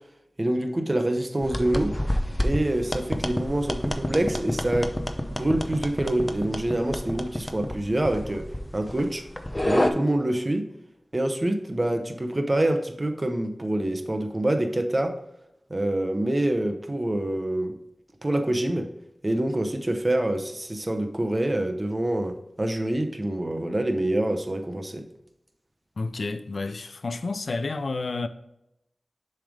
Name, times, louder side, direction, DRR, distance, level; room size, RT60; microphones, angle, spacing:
voice 1, 0.4-2.0 2.4-4.9 5.3-8.5 8.7-9.2 9.6-10.7 11.1-15.2 15.7-17.7 18.2-18.9 19.2-25.1, right 1 dB, 30° right, 0.8 m, -26 dB
sound 1, 1.4-9.9, left 1 dB, 20° left, 0.6 m, -29 dB
voice 2, 26.0-28.3, left 3 dB, 75° left, 0.4 m, -30 dB
7.0 x 3.4 x 5.0 m
wide cardioid pair, 60°, 0 cm